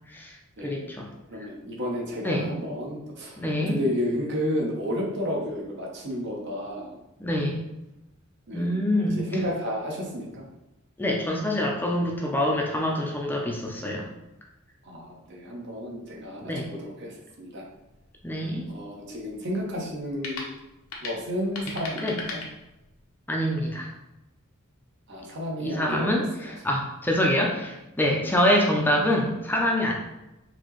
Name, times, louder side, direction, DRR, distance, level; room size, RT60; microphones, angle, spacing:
voice 1, 0.6-1.1 2.2-2.5 3.4-3.8 7.2-7.6 8.5-9.2 11.0-14.1 16.4-16.7 18.2-18.7 22.0-22.2 23.3-23.9 25.6-29.9, left 1 dB, 10° left, -1 dB, 0.5 m, -25 dB
voice 2, 1.3-6.9 8.5-8.7 9.0-10.4 14.8-17.6 18.7-20.5 21.0-22.4 25.1-26.2, equal, 55° right, -2 dB, 0.9 m, -32 dB
sound 1, 17.7-23.1, left 3 dB, 75° left, 0.8 m, -40 dB
4.2 x 2.8 x 3.1 m, 0.95 s
head